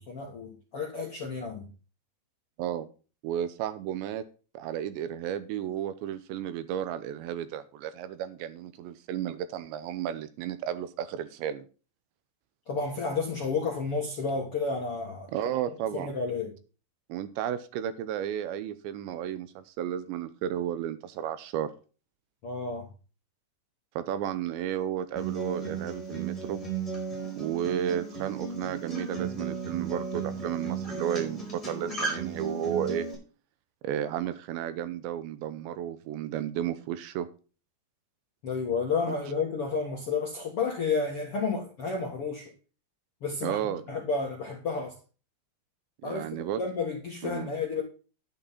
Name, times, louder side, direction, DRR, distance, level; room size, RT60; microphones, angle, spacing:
voice 1, 0.0-1.7 12.7-15.3 15.9-16.5 22.4-22.9 38.4-42.5 43.2-43.6 43.9-45.0 46.0-47.8, left 4 dB, 50° left, 1.7 m, -31 dB
voice 2, 3.2-4.2 4.5-11.7 15.3-16.1 17.1-21.7 24.0-26.6 27.4-33.1 33.8-37.3 43.4-43.8 46.0-46.6 47.2-47.5, right 10 dB, 80° right, 3.0 m, -33 dB
Acoustic guitar, 25.2-33.1, right 5 dB, 5° left, 5.1 m, -35 dB
11.0 x 8.7 x 4.1 m
omnidirectional pair, 5.4 m